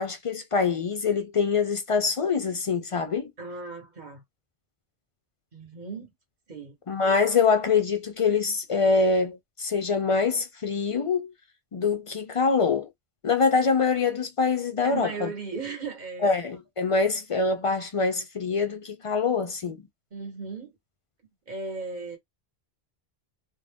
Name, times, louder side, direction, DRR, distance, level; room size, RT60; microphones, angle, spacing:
voice 1, 0.0-3.3 6.9-11.3 11.7-12.9 13.2-15.3 16.2-19.8, left 4 dB, 50° left, 0.4 m, -24 dB
voice 2, 3.4-4.2 5.5-6.1 6.5-6.7 14.8-16.3 20.1-20.7 21.5-22.2, right 4 dB, 45° right, 1.1 m, -36 dB
2.5 x 2.2 x 3.4 m
omnidirectional pair, 1.1 m